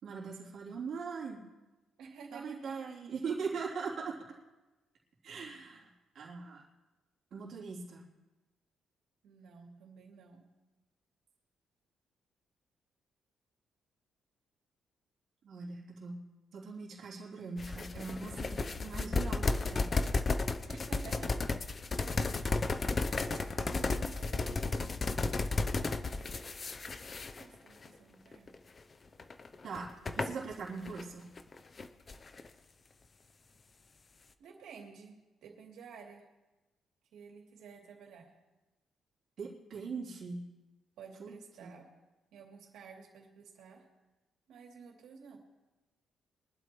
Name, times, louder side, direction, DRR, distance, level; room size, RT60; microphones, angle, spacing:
voice 1, 0.0-1.4 2.3-4.4 5.2-5.9 6.1-6.6 7.3-8.0 15.4-16.2 16.5-19.8 29.6-31.3 39.4-40.4 41.2-41.3 41.6-41.7, right 5 dB, 50° right, -4 dB, 3.2 m, -41 dB
voice 2, 2.0-2.9 9.2-10.5 20.7-21.6 22.7-24.8 27.4-28.5 34.4-36.3 37.1-38.4 41.0-41.9 42.3-43.8 44.5-45.4, right 5 dB, 75° right, 0 dB, 2.9 m, -52 dB
sound 1, 17.6-27.9 28.3-28.6 29.2-31.0 31.4-32.5, left 3 dB, 25° left, 0.6 m, -33 dB
22.5 x 11.5 x 3.1 m, 1.1 s
cardioid pair, 165°, 0 cm